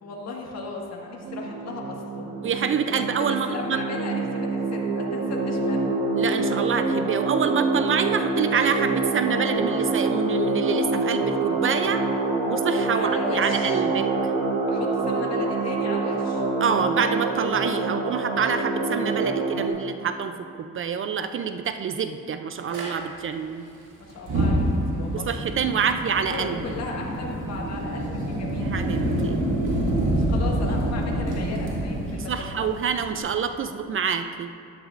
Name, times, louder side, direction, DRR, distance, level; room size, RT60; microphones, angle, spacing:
voice 1, 0.0-2.4 3.3-5.9 12.9-13.8 14.7-16.4 24.0-25.3 26.3-28.7 30.2-32.7, left 3 dB, 60° left, -1 dB, 1.7 m, -36 dB
sound 1, 1.2-19.7, right 3 dB, 60° right, 1.5 m, -26 dB
voice 2, 2.4-3.9 6.2-12.0 12.5-14.1 16.6-23.7 25.1-26.6 28.6-29.4 32.3-34.5, right 7 dB, 45° right, 8 dB, 0.5 m, -27 dB
Fire, 22.7-22.8 24.1-33.2, right 1 dB, 85° right, 2.3 m, -27 dB
12.5 x 10.5 x 2.5 m, 2.4 s
cardioid pair, 90°, 30 cm